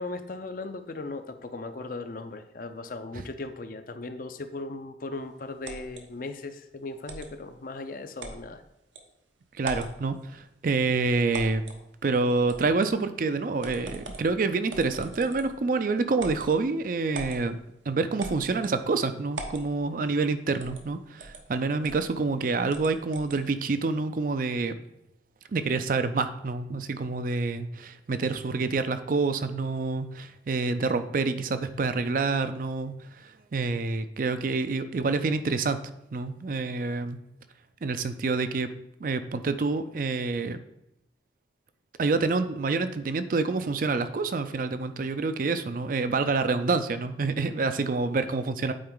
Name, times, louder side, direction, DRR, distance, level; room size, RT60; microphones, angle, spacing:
voice 1, 0.0-8.6, left 2 dB, 50° left, 9 dB, 0.5 m, -37 dB
sound 1, 5.6-6.0 7.1-7.3 8.2-8.4 9.0-9.1 9.6-10.0 11.3-11.8 12.5-12.9 13.6-14.3 14.7-15.6 16.2-16.5 17.1-17.4 18.2-18.8 19.3-19.7 20.6-20.9 21.2-21.4 21.8-22.1 22.7-23.4, right 2 dB, 85° right, 1.0 m, -39 dB
voice 2, 9.6-11.6 12.0-17.6 17.9-24.7 25.5-35.8 36.1-37.2 37.8-38.7 39.0-40.6 42.0-48.7, right 3 dB, 50° right, 10 dB, 0.4 m, -27 dB
8.6 x 4.4 x 3.8 m, 0.81 s
head